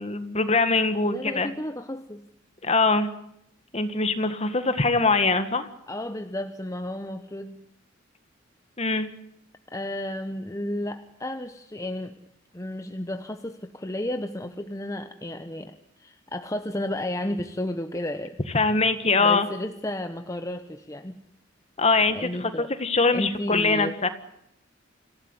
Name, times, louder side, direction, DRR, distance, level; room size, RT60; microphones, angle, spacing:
voice 1, 0.0-1.5 2.6-3.1 3.7-5.7 8.8-9.1 18.5-19.5 21.8-24.1, left 3 dB, 30° left, 10 dB, 1.7 m, -23 dB
voice 2, 1.0-2.3 5.9-7.6 9.7-12.1 12.5-18.4 19.2-21.2 22.0-22.7 23.1-24.0, left 1 dB, 15° left, 8 dB, 1.0 m, -33 dB
27.0 x 16.5 x 9.8 m, 0.79 s
head